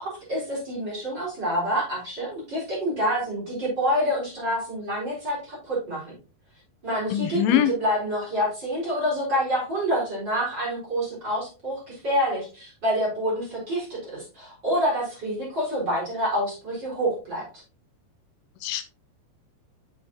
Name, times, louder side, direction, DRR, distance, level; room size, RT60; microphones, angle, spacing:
voice 1, 0.0-6.1 6.8-17.5, equal, 25° right, -6 dB, 4.2 m, -27 dB
voice 2, 7.1-7.7 18.6-18.9, left 10 dB, 85° left, 10 dB, 3.1 m, -23 dB
7.4 x 6.8 x 2.8 m, 0.34 s
omnidirectional pair, 5.5 m